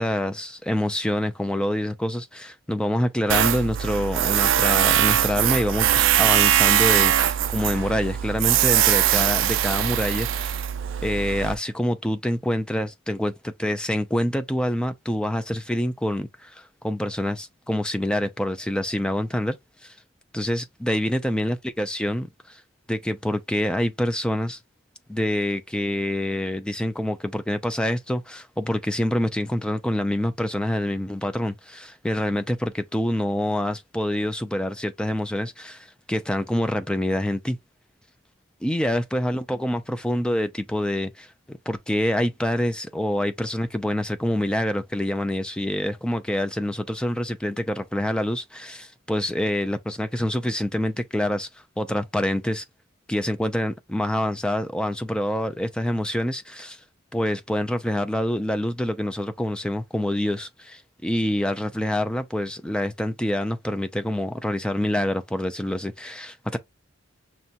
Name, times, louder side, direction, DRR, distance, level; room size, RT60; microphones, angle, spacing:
voice 1, 0.0-10.6 11.0-19.6 19.8-19.9 20.3-22.6 22.9-24.6 25.1-37.6 38.6-51.5 51.8-52.6 53.1-56.8 57.1-66.6, left 1 dB, 5° left, 0.4 m, -26 dB
Tools, 3.3-11.5, right 11 dB, 70° right, 0.4 m, -21 dB
6.1 x 2.2 x 2.7 m
head